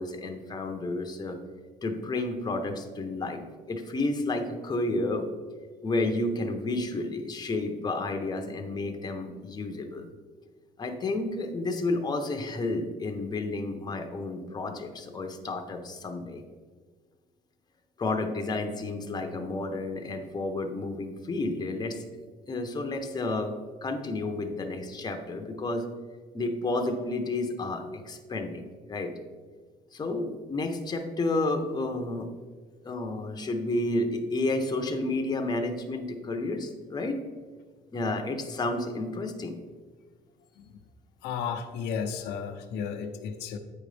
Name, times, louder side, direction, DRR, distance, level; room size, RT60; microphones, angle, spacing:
voice 1, 0.0-1.4 1.8-5.2 5.8-10.1 10.8-16.4 18.0-22.0 22.5-23.5 23.8-25.9 26.3-28.6 28.9-29.1 29.9-32.3 32.8-37.2 37.9-39.5, left 2 dB, 25° left, 4 dB, 0.8 m, -31 dB
voice 2, 41.2-43.6, left 6 dB, 90° left, 5 dB, 0.6 m, -33 dB
8.3 x 5.2 x 3.3 m, 1.5 s
cardioid pair, 110°, 17 cm